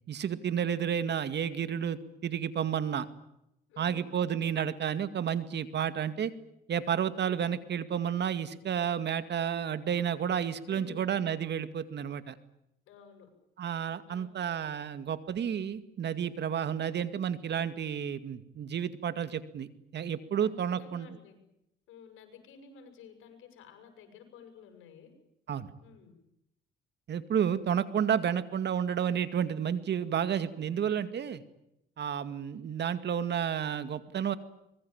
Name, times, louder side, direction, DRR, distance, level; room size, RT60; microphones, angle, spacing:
voice 1, 0.1-3.1 3.8-6.3 6.7-12.3 13.6-21.1 25.5-25.7 27.1-31.4 32.0-34.4, right 8 dB, 60° right, 12 dB, 2.3 m, -31 dB
voice 2, 3.7-4.1 10.7-11.1 12.9-13.3 14.1-14.3 20.4-20.5 20.8-21.4 21.9-25.1 25.8-26.1, left 6 dB, 90° left, 7 dB, 7.6 m, -52 dB
25.0 x 22.0 x 9.0 m, 0.84 s
cardioid pair, 90°, 20 cm